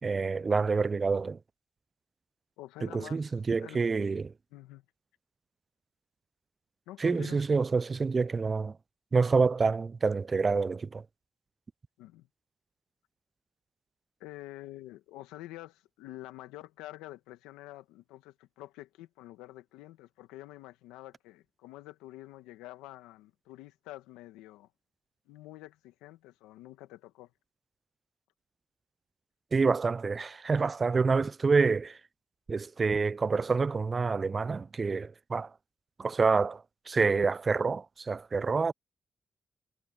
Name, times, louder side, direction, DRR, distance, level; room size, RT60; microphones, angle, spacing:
voice 1, 0.0-1.4 2.8-4.3 7.0-8.8 9.1-11.0 29.5-32.0 32.5-35.5 36.0-38.7, right 4 dB, 45° right, 0.3 m, -27 dB
voice 2, 2.6-3.8 4.5-4.9 6.9-7.4 12.0-12.3 14.2-24.7 25.3-27.3, left 16 dB, 90° left, 1.8 m, -48 dB
hypercardioid pair, 45°, 0 cm